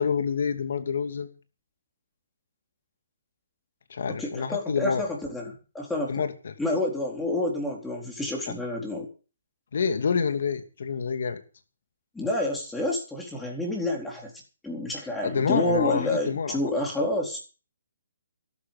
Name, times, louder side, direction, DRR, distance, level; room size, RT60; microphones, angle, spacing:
voice 1, 0.0-1.3 3.9-5.0 6.1-6.5 8.5-8.6 9.7-11.4 15.2-16.6, left 6 dB, 65° left, 8 dB, 2.8 m, -27 dB
voice 2, 4.1-6.3 6.6-9.1 12.1-14.3 14.6-17.4, left 1 dB, 5° left, -1 dB, 4.1 m, -29 dB
13.0 x 13.0 x 5.7 m, 0.36 s
hypercardioid pair, 155°, 0 cm